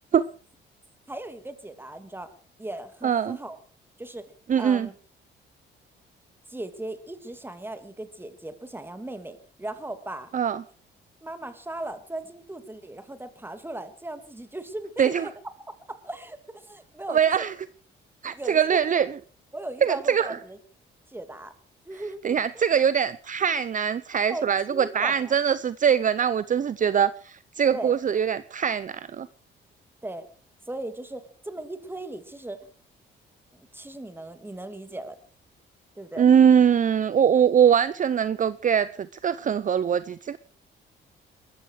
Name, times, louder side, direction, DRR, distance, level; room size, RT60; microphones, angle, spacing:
voice 1, 1.1-2.3 2.6-3.6 4.0-4.3 4.6-4.9 6.5-10.3 11.2-15.3 15.9-17.4 18.3-18.8 19.5-20.6 21.1-21.5 21.9-22.6 24.3-25.4 27.7-28.0 30.0-30.3 30.7-32.6 33.5-35.2 36.0-36.2, right 1 dB, 10° right, 2.7 m, -37 dB
voice 2, 3.0-3.4 4.5-4.9 10.3-10.6 15.0-15.3 17.1-17.5 18.2-19.2 19.8-20.4 22.2-29.3 36.2-38.9 39.2-40.4, right 8 dB, 40° right, 0.7 m, -22 dB
21.5 x 13.5 x 4.9 m
cardioid pair, 90°, 20 cm